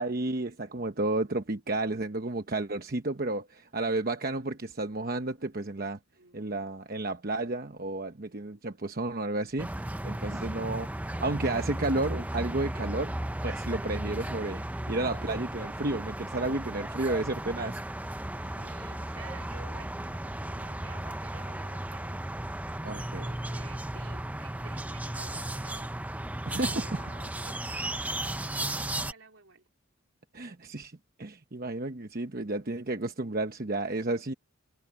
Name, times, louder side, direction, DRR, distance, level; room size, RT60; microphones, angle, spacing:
voice 1, 0.0-6.0 6.3-9.7 10.0-13.1 13.4-17.8 22.8-23.2 26.5-27.0 30.3-30.9 31.2-34.3, right 2 dB, 45° right, 1.0 m, -32 dB
voice 2, 6.2-6.5 18.3-22.2 23.0-25.9 26.6-29.7, right 4 dB, 70° right, 3.6 m, -52 dB
sound 1, 9.6-29.1, right 1 dB, 5° right, 0.6 m, -35 dB
head